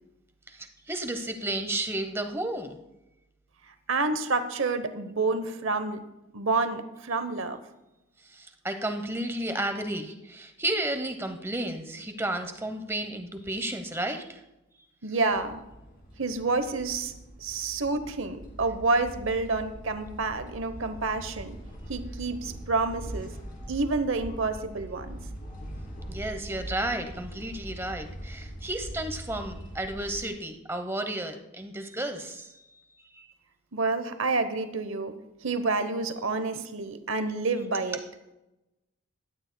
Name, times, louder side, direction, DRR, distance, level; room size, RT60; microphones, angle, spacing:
voice 1, 0.5-2.8 8.2-14.4 26.1-32.8 33.1-33.3, right 1 dB, 10° right, 7 dB, 0.8 m, -32 dB
voice 2, 3.9-6.0 6.3-7.6 15.0-15.6 16.2-17.1 17.4-21.6 21.9-23.3 23.7-25.2 33.7-35.1 35.4-38.0, right 3 dB, 65° right, 10 dB, 0.9 m, -28 dB
sound 1, 15.3-30.3, right 1 dB, 40° left, 2.5 m, -42 dB
17.0 x 12.0 x 2.2 m, 0.97 s
head